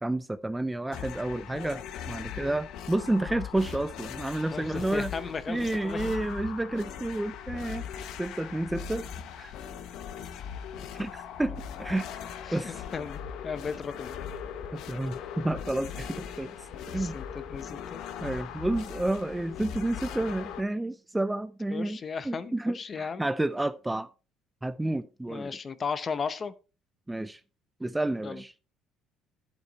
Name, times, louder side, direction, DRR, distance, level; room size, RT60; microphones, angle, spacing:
voice 1, 0.0-5.1 5.5-7.9 8.2-9.1 9.3-9.5 11.0-12.1 12.5-12.7 14.7-16.5 16.9-17.2 18.2-22.0 22.2-24.1 24.6-25.6 27.1-27.4 27.8-28.5, right 1 dB, 10° right, 0.4 m, -30 dB
sound 1, 0.9-20.6, left 8 dB, 70° left, 1.0 m, -40 dB
voice 2, 4.5-6.1 12.5-14.2 16.9-18.0 21.7-23.3 25.3-26.5 28.2-28.4, left 5 dB, 35° left, 0.7 m, -36 dB
11.5 x 8.0 x 3.1 m
cardioid pair, 115°, 0 cm